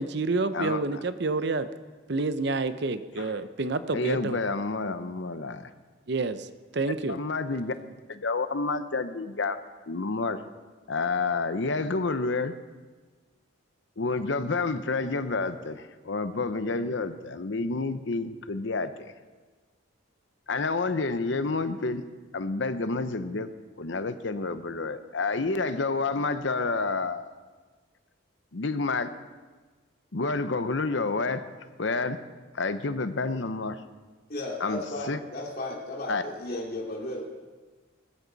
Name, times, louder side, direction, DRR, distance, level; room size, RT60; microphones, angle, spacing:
voice 1, 0.0-1.7 2.1-4.4 6.1-6.5 6.7-7.2, right 3 dB, 55° right, 12 dB, 0.7 m, -28 dB
voice 2, 3.9-5.7 7.1-7.7 8.1-9.6 9.9-10.4 10.9-12.6 14.0-19.1 20.5-22.0 22.3-23.5 23.8-27.3 28.5-29.1 30.1-31.5 31.8-32.2 32.5-33.8 34.6-34.8 35.1-35.2 36.1-36.2, left 3 dB, 65° left, 11 dB, 0.8 m, -29 dB
voice 3, 34.3-37.3, left 1 dB, 45° left, -2 dB, 2.8 m, -34 dB
20.0 x 14.0 x 4.0 m, 1.4 s
head